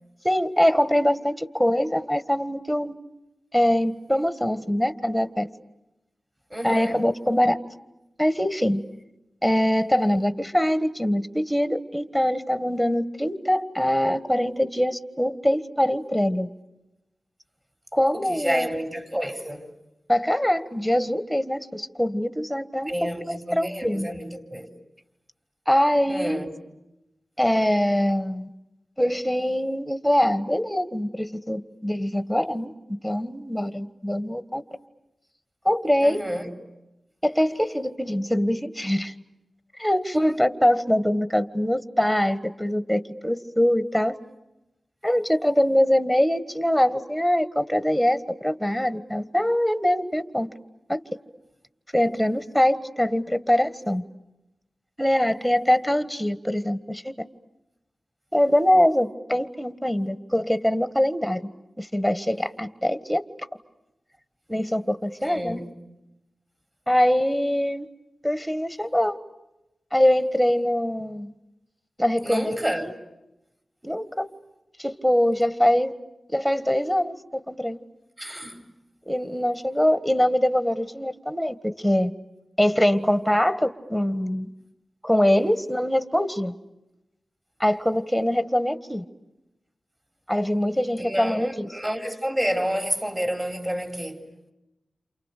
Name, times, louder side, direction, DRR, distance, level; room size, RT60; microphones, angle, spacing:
voice 1, 0.2-2.9 3.5-5.5 6.6-7.6 8.2-8.8 9.4-16.5 17.9-18.7 20.1-22.9 23.3-24.1 25.7-26.4 27.4-28.5 29.0-32.7 33.0-34.6 35.6-36.3 37.2-39.1 39.8-44.2 45.0-50.5 50.9-51.0 51.9-54.0 55.0-57.1 58.3-61.4 61.8-63.2 64.5-65.6 66.9-67.9 68.2-69.2 69.9-71.3 72.0-72.5 72.8-72.9 73.8-74.3 74.8-75.9 76.3-77.8 79.1-82.1 82.6-84.5 85.0-86.5 87.6-89.0 90.3-91.7, equal, ahead, 1.6 m, -23 dB
voice 2, 6.5-7.0 18.1-19.7 22.9-24.7 26.1-26.5 36.0-36.5 65.2-65.7 72.2-72.9 78.2-78.7 91.0-94.3, equal, 20° right, 4.1 m, -29 dB
29.0 x 28.5 x 6.7 m
wide cardioid pair, 70°, 0 cm